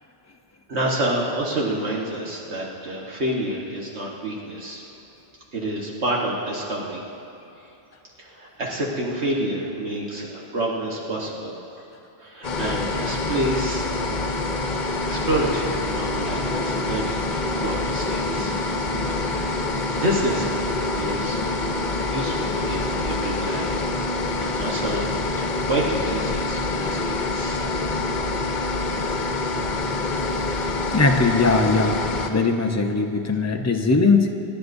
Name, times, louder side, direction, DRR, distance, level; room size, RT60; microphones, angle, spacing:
voice 1, 0.7-4.8 5.5-7.0 8.2-11.9 12.2-13.8 15.0-18.6 19.0-21.5 22.1-23.9 24.4-25.0 25.3-27.6, right 1 dB, 70° right, -4 dB, 1.6 m, -28 dB
sound 1, 12.4-32.3, left 2 dB, 45° left, 1.0 m, -26 dB
voice 2, 30.9-32.0 32.3-34.3, left 3 dB, 20° left, 3 dB, 0.6 m, -20 dB
26.5 x 11.5 x 2.6 m, 2.9 s
omnidirectional pair, 1.2 m